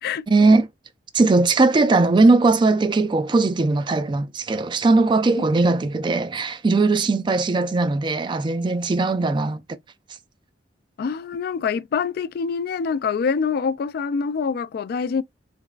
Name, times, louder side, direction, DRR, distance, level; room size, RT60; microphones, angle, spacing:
voice 1, 0.3-0.7 1.1-9.6, right 3 dB, 25° right, 0.3 m, -19 dB
voice 2, 11.0-15.2, left 5 dB, 60° left, 0.3 m, -25 dB
3.5 x 2.9 x 2.3 m
head